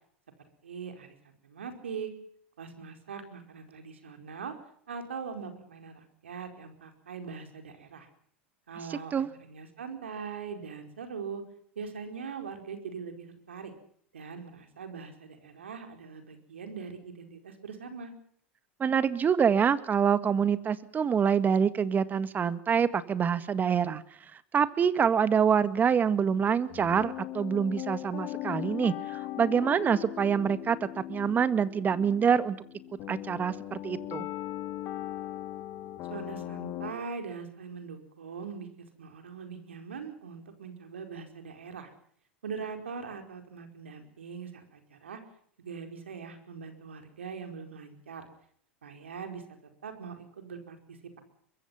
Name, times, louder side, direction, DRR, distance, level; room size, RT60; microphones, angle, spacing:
voice 1, 0.6-1.2 1.4-2.1 2.6-4.5 4.9-8.1 8.7-11.4 11.7-13.7 14.1-18.1 36.1-41.9 42.4-45.2 45.6-48.3 48.8-51.2, right 6 dB, 90° right, 6 dB, 4.7 m, -41 dB
voice 2, 8.9-9.3 18.8-24.0 24.3-32.6 33.1-34.3, right 7 dB, 30° right, 14 dB, 1.8 m, -26 dB
sound 1, 26.7-36.9, left 14 dB, 50° left, 2.7 m, -39 dB
24.0 x 22.0 x 5.8 m, 0.62 s
hypercardioid pair, 95°, 6 cm